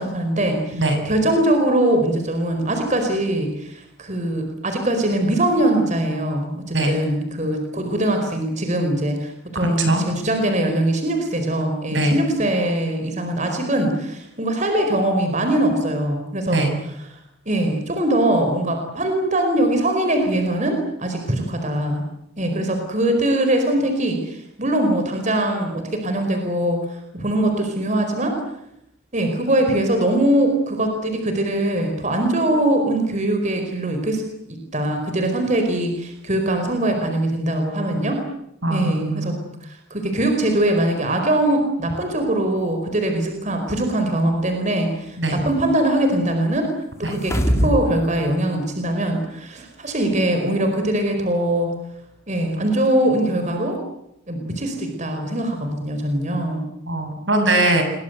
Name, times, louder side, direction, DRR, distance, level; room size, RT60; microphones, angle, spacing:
voice 1, 0.0-16.6 17.5-22.0 22.4-28.4 29.1-34.2 34.5-38.2 38.7-39.4 39.6-46.7 47.0-51.7 52.3-53.8 54.3-56.7, right 1 dB, 40° right, 5 dB, 4.8 m, -22 dB
voice 2, 9.5-10.0 11.9-12.2 16.5-16.7 38.6-39.3 45.2-45.4 47.0-47.2 56.9-57.8, right 2 dB, 75° right, 6 dB, 7.4 m, -21 dB
sound 1, 47.1-47.9 48.3-48.4, equal, 15° left, 2.8 m, -21 dB
28.5 x 23.5 x 8.1 m, 0.80 s
head